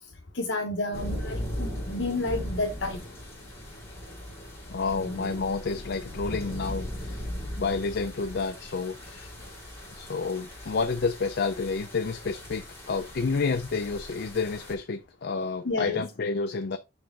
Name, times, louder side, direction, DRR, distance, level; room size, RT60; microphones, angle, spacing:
voice 1, 0.3-3.0 15.6-16.0, left 2 dB, 75° left, 1.1 m, -30 dB
sound 1, 0.9-14.7, equal, 15° left, 2.5 m, -38 dB
voice 2, 4.7-7.2 7.6-9.3 10.0-16.8, left 4 dB, 55° left, 0.5 m, -30 dB
6.1 x 4.8 x 3.6 m
head